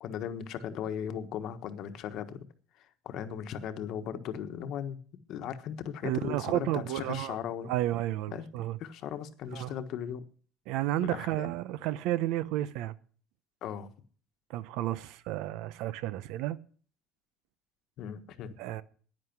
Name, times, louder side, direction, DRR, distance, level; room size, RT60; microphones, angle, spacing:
voice 1, 0.0-2.4 2.8-5.0 5.3-7.7 8.3-8.5 8.8-10.2 11.0-11.5 13.6-13.9 18.0-18.5, left 9 dB, 50° left, 1.2 m, -37 dB
voice 2, 6.0-7.4 7.6-8.8 9.5-9.7 10.7-12.9 14.5-16.6 18.6-18.8, right 14 dB, 70° right, 0.7 m, -32 dB
10.5 x 9.8 x 6.0 m
cardioid pair, 155°, 0 cm